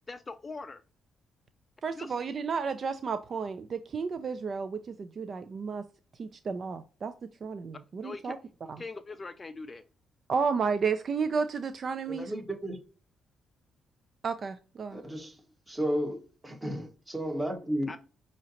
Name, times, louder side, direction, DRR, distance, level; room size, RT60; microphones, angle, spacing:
voice 1, 0.1-0.8 2.0-2.1 8.0-8.3 8.8-9.8 17.9-18.0, left 3 dB, 30° left, 0.4 m, -41 dB
voice 2, 1.8-5.8 6.2-7.1 7.4-8.4 8.7-8.8 10.3-12.3 14.2-15.0, right 5 dB, 45° right, 0.4 m, -32 dB
voice 3, 12.1-12.8 14.9-15.4 15.7-17.9, equal, 15° right, 1.7 m, -33 dB
6.0 x 2.8 x 2.8 m
cardioid pair, 90°, 0 cm